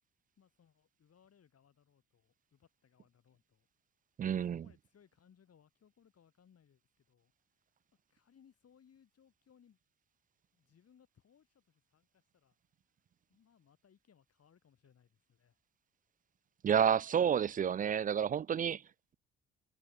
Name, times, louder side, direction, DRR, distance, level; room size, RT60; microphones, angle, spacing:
voice 1, 0.4-3.7 4.4-7.3 8.1-9.8 10.5-12.6 13.3-15.6, left 8 dB, 50° left, 7.3 m, -67 dB
voice 2, 4.2-4.7 16.6-18.8, right 8 dB, 30° right, 0.3 m, -30 dB
hypercardioid pair, 45°, 30 cm